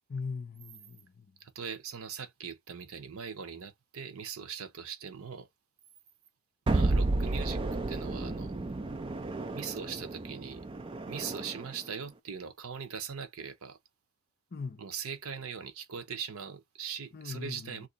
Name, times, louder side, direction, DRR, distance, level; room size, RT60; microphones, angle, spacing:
voice 1, 0.1-1.3 14.5-14.8 17.1-17.9, left 4 dB, 45° left, 0.6 m, -40 dB
voice 2, 1.4-5.5 6.7-7.6 7.9-8.5 9.5-10.6 11.1-13.8 14.8-17.9, right 7 dB, 90° right, 0.7 m, -40 dB
sound 1, 6.7-11.8, right 2 dB, 25° right, 0.4 m, -32 dB
2.7 x 2.6 x 3.8 m
head